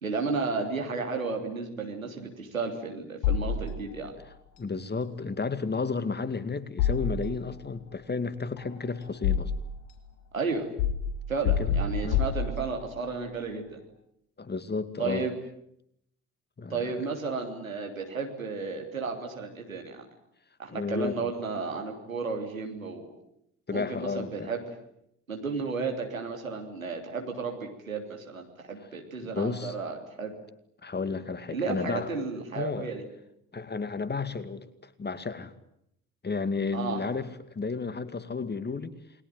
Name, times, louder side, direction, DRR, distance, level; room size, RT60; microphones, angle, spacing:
voice 1, 0.0-4.1 10.3-10.7 11.3-13.8 15.0-15.3 16.7-20.1 20.6-23.1 23.7-24.6 25.3-30.3 31.5-33.0 36.7-37.0, right 4 dB, 85° right, 3 dB, 3.3 m, -33 dB
sound 1, 3.2-4.1 6.8-7.7 8.6-9.9 10.8-13.0, left 7 dB, 65° left, 4.2 m, -28 dB
voice 2, 4.6-9.5 11.4-12.2 14.4-15.3 16.6-17.1 20.7-21.3 23.7-24.5 29.3-29.7 30.8-32.1 32.6-32.9 33.5-34.7 35.0-35.5 36.2-38.9, left 4 dB, 25° left, 13 dB, 2.4 m, -32 dB
28.5 x 22.0 x 9.3 m, 0.77 s
figure-of-eight pair, 50°, 40 cm